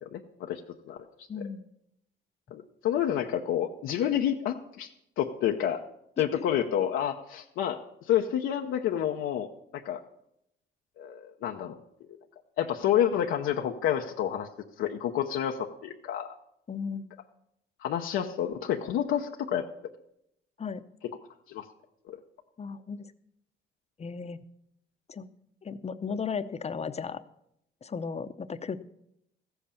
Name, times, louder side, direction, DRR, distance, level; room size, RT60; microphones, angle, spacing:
voice 1, 0.1-0.6 0.9-1.0 2.5-4.9 5.2-5.8 6.2-7.8 8.1-9.5 9.7-10.0 11.0-11.8 12.6-14.5 14.8-16.3 17.8-19.7 21.5-21.6 22.1-22.2, left 10 dB, 90° left, 2 dB, 0.8 m, -29 dB
voice 2, 1.3-1.6 6.2-6.3 16.7-17.1 20.6-20.8 22.6-23.1 24.0-24.4 25.1-25.3 25.6-27.2 27.8-28.8, left 5 dB, 35° left, 12 dB, 0.7 m, -35 dB
14.5 x 8.0 x 6.9 m, 0.79 s
cardioid pair, 90°, 20 cm